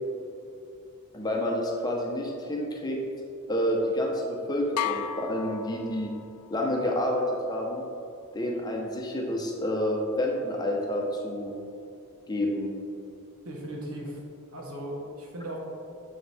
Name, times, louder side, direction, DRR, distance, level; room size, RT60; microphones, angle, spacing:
voice 1, 1.1-3.0 3.5-6.1 6.5-7.8 8.3-11.5 12.3-12.7, left 1 dB, 20° left, -1 dB, 0.8 m, -29 dB
sound 1, 4.8-6.5, left 10 dB, 85° left, 0.4 m, -34 dB
voice 2, 13.4-14.2 14.5-15.6, right 1 dB, 75° right, -1 dB, 1.4 m, -37 dB
7.3 x 6.9 x 3.5 m, 2.5 s
head